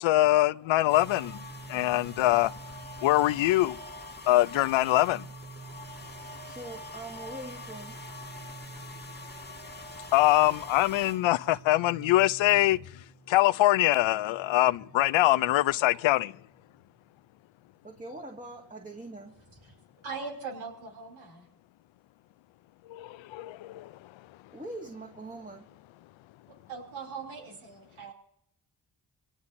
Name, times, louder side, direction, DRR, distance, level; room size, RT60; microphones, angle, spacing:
voice 1, 0.0-1.4 1.7-2.5 3.0-3.8 4.3-5.2 10.1-12.8 13.3-16.3 22.9-23.9, left 16 dB, 75° left, 0.5 m, -23 dB
sound 1, 0.9-13.6 13.9-16.4, equal, 20° left, 1.5 m, -45 dB
voice 2, 6.5-7.9 17.8-19.3 24.5-25.6, right 2 dB, 15° right, 1.8 m, -42 dB
voice 3, 20.0-21.5 26.4-28.1, right 5 dB, 85° right, 3.0 m, -40 dB
25.0 x 18.0 x 2.6 m
supercardioid pair, 40°, 46 cm